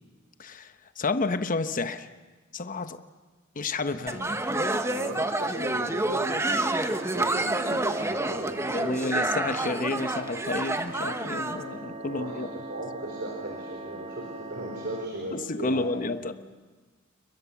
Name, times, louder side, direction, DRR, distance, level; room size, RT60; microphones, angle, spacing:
voice 1, 0.4-2.1 2.5-3.0 3.5-4.2 8.7-12.6 15.3-16.3, left 3 dB, 40° left, 10 dB, 1.0 m, -30 dB
voice 2, 3.8-9.1 12.1-16.2, right 1 dB, 60° right, 0 dB, 4.1 m, -38 dB
sound 1, 4.1-11.6, right 2 dB, 15° right, 1.1 m, -28 dB
sound 2, 6.4-15.1, right 2 dB, 30° right, 2.2 m, -41 dB
29.5 x 22.5 x 7.1 m, 1.3 s
head